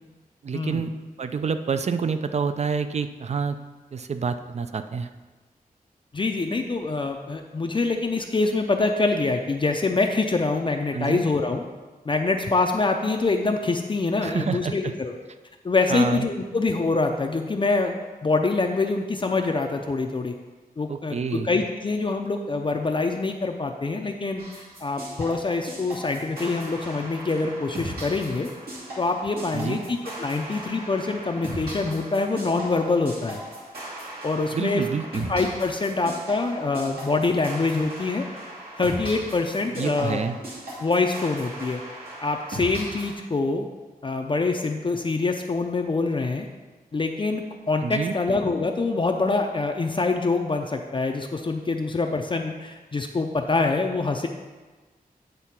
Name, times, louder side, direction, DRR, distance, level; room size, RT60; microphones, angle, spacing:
voice 1, 0.4-0.9 1.2-3.6 3.9-5.1 10.9-11.2 14.2-14.9 15.9-16.3 20.9-21.5 29.5-29.8 34.5-35.3 39.8-40.4 47.8-48.1, right 5 dB, 45° right, 9 dB, 0.4 m, -28 dB
voice 2, 6.1-11.6 12.1-15.1 15.6-17.9 18.2-20.3 20.8-28.5 29.0-33.4 34.2-34.8 35.3-38.3 38.8-40.2 40.8-41.8 42.2-43.7 44.0-46.5 46.9-54.3, left 3 dB, 35° left, 3 dB, 0.5 m, -25 dB
sound 1, 24.4-43.1, right 1 dB, 80° right, 2.4 m, -38 dB
9.1 x 3.7 x 5.8 m, 1.3 s
wide cardioid pair, 135°, 15 cm